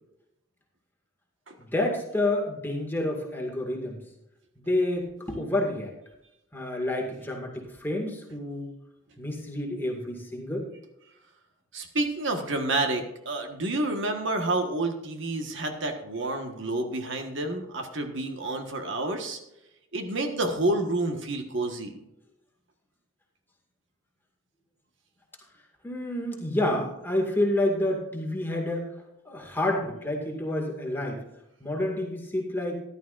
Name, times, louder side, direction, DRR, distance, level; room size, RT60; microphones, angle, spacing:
voice 1, 1.6-4.0 4.6-5.9 6.5-8.7 9.2-10.6 25.8-28.9 29.3-31.2 31.6-32.8, left 1 dB, 10° left, 0 dB, 2.0 m, -29 dB
voice 2, 11.7-19.4 19.9-21.9, right 2 dB, 60° right, 5 dB, 1.4 m, -29 dB
14.5 x 11.5 x 2.5 m, 0.87 s
head